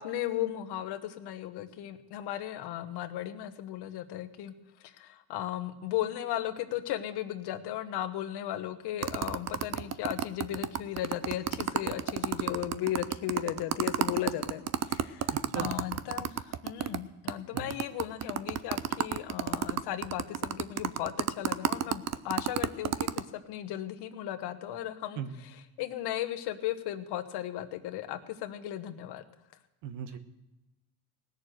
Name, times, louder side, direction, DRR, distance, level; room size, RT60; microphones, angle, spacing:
voice 1, 0.0-4.5 5.0-14.6 14.9-15.3 15.5-16.3 16.6-25.2 25.8-29.2, left 12 dB, 65° left, 10 dB, 1.2 m, -36 dB
sound 1, 9.0-17.0 17.3-17.4 17.6-23.2, right 10 dB, 40° right, 0.6 m, -30 dB
voice 2, 15.3-15.7 17.5-17.7 25.2-25.4 29.8-30.2, right 9 dB, 80° right, 10 dB, 1.3 m, -38 dB
18.0 x 6.8 x 7.7 m, 1.0 s
cardioid pair, 110°, 42 cm